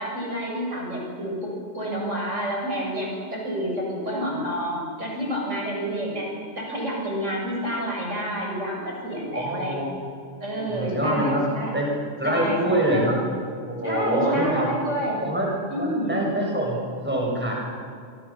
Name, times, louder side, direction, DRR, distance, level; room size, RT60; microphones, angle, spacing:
voice 1, 0.0-9.7 10.4-11.7 12.2-13.1 13.8-15.2 15.7-16.2, equal, 75° right, -2 dB, 7.6 m, -29 dB
voice 2, 9.3-10.0 10.5-11.4 11.7-13.2 13.7-14.7 15.2-15.5 15.8-17.5, right 1 dB, 10° right, -2 dB, 6.6 m, -25 dB
27.0 x 26.0 x 7.2 m, 2.2 s
omnidirectional pair, 1.3 m